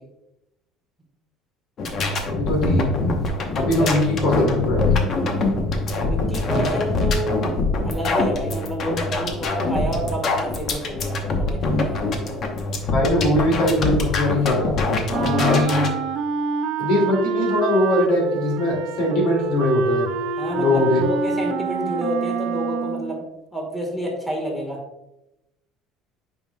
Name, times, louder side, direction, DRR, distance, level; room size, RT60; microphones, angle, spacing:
sound 1, 1.8-15.9, left 2 dB, 40° left, 0.9 m, -24 dB
voice 1, 2.3-2.9 3.5-5.0 12.9-14.8 15.2-15.9 16.8-20.1 20.6-21.0, left 2 dB, 65° left, 0 dB, 2.3 m, -21 dB
voice 2, 6.0-7.4 7.8-12.4 15.1-15.5 20.4-23.3 23.5-24.8, equal, 5° left, 0 dB, 1.4 m, -29 dB
Wind instrument woodwind instrument, 15.1-23.2, right 6 dB, 65° right, 0.5 m, -27 dB
8.8 x 5.1 x 2.2 m, 0.91 s
cardioid pair, 155°, 0 cm